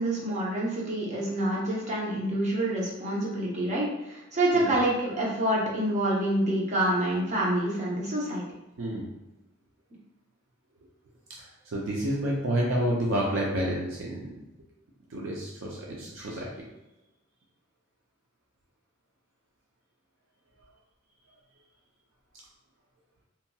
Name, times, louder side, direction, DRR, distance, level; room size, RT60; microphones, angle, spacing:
voice 1, 0.0-8.4, right 1 dB, 35° right, -5 dB, 0.7 m, -27 dB
voice 2, 8.8-9.1 11.4-14.3 15.1-16.5, right 1 dB, 70° right, -3 dB, 0.5 m, -29 dB
2.8 x 2.7 x 2.2 m, 0.96 s
head